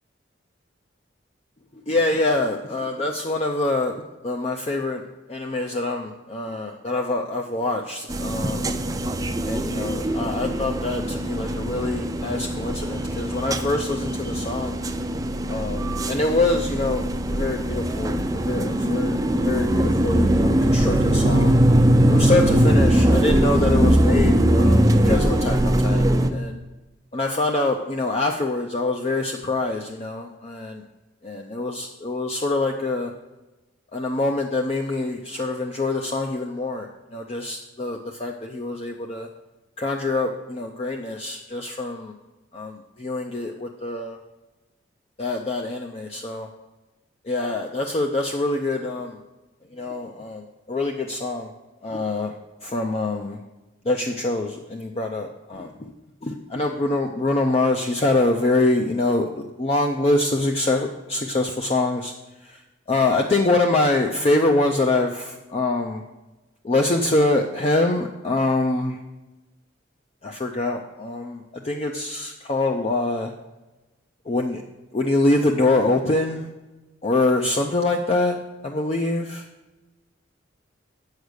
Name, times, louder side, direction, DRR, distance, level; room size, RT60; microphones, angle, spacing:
voice 1, 1.9-4.0 4.2-8.7 9.4-14.8 15.5-21.6 22.1-26.6 27.1-30.8 31.2-33.1 33.9-39.3 39.8-42.1 42.5-44.2 45.2-46.5 47.2-49.2 49.7-51.5 51.8-52.3 52.6-53.4 53.8-55.9 56.2-62.1 62.4-62.6 62.9-66.0 66.6-69.0 70.2-73.3 74.3-74.6 74.9-76.5 77.0-79.5, left 2 dB, 30° left, 2 dB, 0.5 m, -25 dB
sound 1, 8.1-26.3, right 1 dB, 20° right, 0.5 m, -21 dB
8.3 x 6.5 x 6.4 m, 1.1 s
head